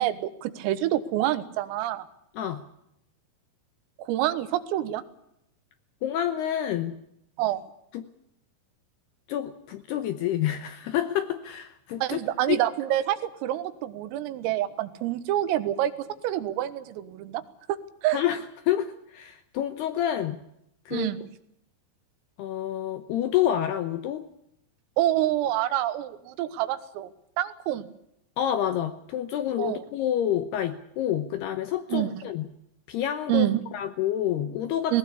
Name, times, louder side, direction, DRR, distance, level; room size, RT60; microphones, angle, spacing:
voice 1, 0.0-2.1 4.0-5.0 7.4-7.6 12.0-17.4 17.7-18.2 20.9-21.2 25.0-27.1 27.4-27.9 29.6-29.8 31.9-32.2 33.3-33.6 34.9-35.0, right 13 dB, 85° right, 13 dB, 3.9 m, -27 dB
voice 2, 6.0-7.0 7.9-8.1 9.3-12.2 12.5-12.6 18.1-20.4 20.9-21.1 22.4-24.3 28.4-32.5 32.9-34.9, left 11 dB, 75° left, 10 dB, 2.5 m, -28 dB
19.0 x 19.0 x 8.4 m, 0.78 s
omnidirectional pair, 5.9 m